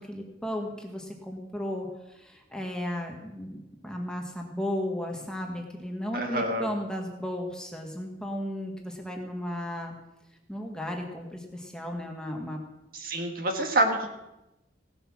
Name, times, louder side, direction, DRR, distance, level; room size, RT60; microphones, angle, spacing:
voice 1, 0.0-9.9 10.5-12.6, left 1 dB, 5° left, 1 dB, 1.6 m, -35 dB
voice 2, 6.1-6.7 12.9-14.1, right 1 dB, 50° right, 4 dB, 1.6 m, -27 dB
17.0 x 7.9 x 6.2 m, 0.94 s
head